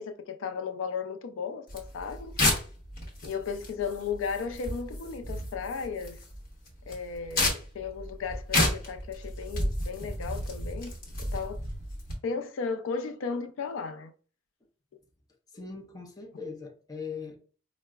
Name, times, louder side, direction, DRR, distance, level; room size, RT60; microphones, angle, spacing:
voice 1, 0.0-2.3 3.2-6.2 6.9-10.9 11.3-11.6 12.2-14.1, left 5 dB, 85° left, 0.4 m, -35 dB
sound 1, 1.7-12.1, left 1 dB, 45° left, 0.9 m, -32 dB
voice 2, 15.5-17.4, left 5 dB, 20° left, 0.5 m, -40 dB
4.6 x 2.0 x 2.2 m
head